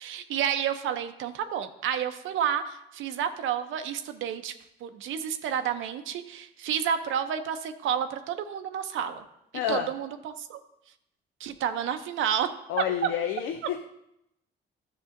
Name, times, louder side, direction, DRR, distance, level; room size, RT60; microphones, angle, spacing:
voice 1, 0.0-4.5 4.8-9.2 9.7-10.6 11.4-12.5 13.0-13.1, right 9 dB, 80° right, 8 dB, 0.6 m, -30 dB
voice 2, 9.5-9.9 12.7-13.9, left 9 dB, 85° left, 5 dB, 0.5 m, -29 dB
11.5 x 6.7 x 2.6 m, 0.82 s
cardioid pair, 90°, 20 cm